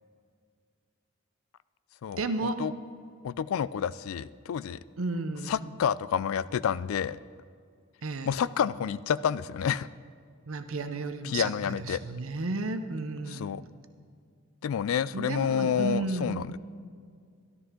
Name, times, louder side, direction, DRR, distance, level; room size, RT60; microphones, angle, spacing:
voice 1, 2.2-2.6 5.0-5.7 8.0-8.4 10.5-13.6 15.1-16.4, right 3 dB, 75° right, 9 dB, 0.8 m, -33 dB
voice 2, 3.2-4.8 5.5-7.2 8.3-9.9 11.2-12.0 13.3-13.6 14.6-16.6, left 8 dB, 75° left, 17 dB, 0.3 m, -29 dB
13.5 x 12.5 x 3.7 m, 2.2 s
head